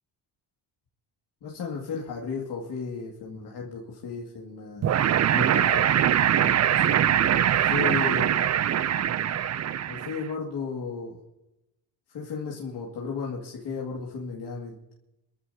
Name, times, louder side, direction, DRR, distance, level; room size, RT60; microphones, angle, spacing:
voice 1, 1.4-4.9 5.3-7.1 7.6-8.4 9.9-11.2 12.1-14.8, left 5 dB, 65° left, -3 dB, 2.3 m, -35 dB
sound 1, 4.8-10.3, right 10 dB, 40° right, 0.5 m, -23 dB
27.0 x 14.0 x 2.8 m, 0.91 s
cardioid pair, 105°, 43 cm